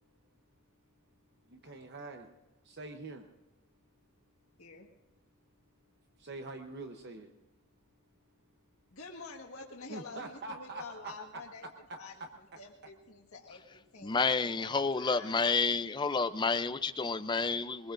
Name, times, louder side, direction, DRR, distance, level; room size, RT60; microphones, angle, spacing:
voice 1, 1.4-2.3 2.6-3.3 6.2-7.4 9.9-12.6, right 3 dB, 50° right, 0.9 m, -45 dB
voice 2, 4.6-4.9 8.9-11.7 12.0-14.3 14.6-15.4, left 4 dB, 80° left, 1.7 m, -48 dB
voice 3, 14.0-17.9, left 4 dB, 20° left, 0.5 m, -30 dB
23.5 x 20.5 x 2.6 m
head